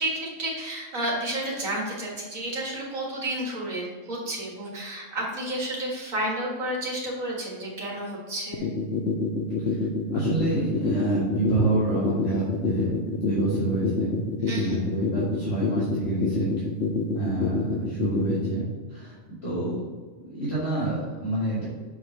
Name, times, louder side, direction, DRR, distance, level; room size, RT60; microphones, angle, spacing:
voice 1, 0.0-8.7 14.4-14.8, right 1 dB, 90° right, -3 dB, 2.3 m, -31 dB
sound 1, 8.5-18.5, left 4 dB, 65° left, 1.0 m, -26 dB
voice 2, 10.1-14.2 14.5-16.5 17.1-19.8 20.2-21.7, right 2 dB, 50° left, -10 dB, 2.1 m, -28 dB
7.2 x 4.7 x 4.2 m, 1.5 s
omnidirectional pair, 1.4 m